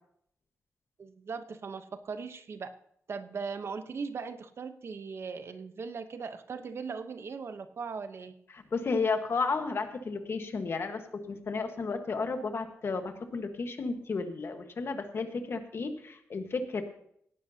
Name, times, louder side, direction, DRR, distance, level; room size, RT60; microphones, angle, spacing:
voice 1, 1.0-2.7 3.1-8.3, right 5 dB, 55° right, 9 dB, 0.9 m, -39 dB
voice 2, 8.5-16.8, left 4 dB, 50° left, 6 dB, 1.4 m, -33 dB
17.5 x 11.5 x 2.8 m, 0.69 s
wide cardioid pair, 115°, 5 cm